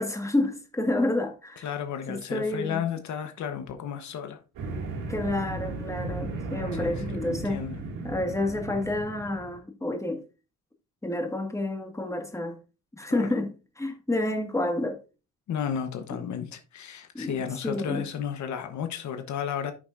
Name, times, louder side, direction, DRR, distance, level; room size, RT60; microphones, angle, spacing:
voice 1, 0.0-1.7 2.1-2.8 5.1-7.6 8.0-10.2 11.0-12.6 12.9-15.0 16.1-16.2 17.1-18.1, left 2 dB, 10° left, 1.9 m, -29 dB
voice 2, 1.6-4.4 6.8-7.8 13.1-13.3 15.5-19.7, left 8 dB, 70° left, 1.2 m, -33 dB
sound 1, 4.6-9.6, right 3 dB, 85° right, 2.4 m, -35 dB
10.5 x 6.1 x 2.6 m
cardioid pair, 90°, 30 cm